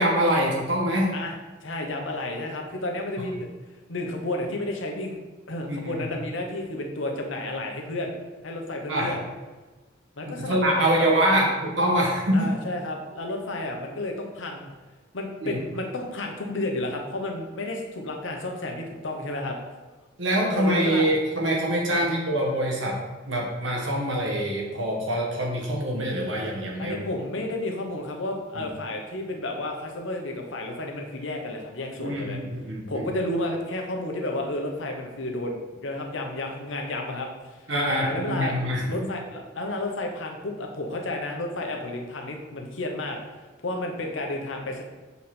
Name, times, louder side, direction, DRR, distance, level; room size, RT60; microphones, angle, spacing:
voice 1, 0.0-1.1 5.7-5.9 8.9-9.1 10.5-12.5 15.4-15.6 20.2-23.0 23.3-27.0 28.5-28.6 32.0-33.0 37.7-38.8, right 1 dB, 75° right, -2 dB, 1.6 m, -24 dB
voice 2, 1.1-3.5 3.9-5.2 5.5-8.1 8.4-9.2 10.2-11.5 12.3-14.7 15.1-19.6 20.5-21.1 21.9-22.0 26.8-32.4 32.9-37.3 38.0-38.5 38.8-44.8, left 1 dB, 80° left, 2 dB, 1.1 m, -31 dB
7.1 x 4.1 x 4.4 m, 1.2 s
head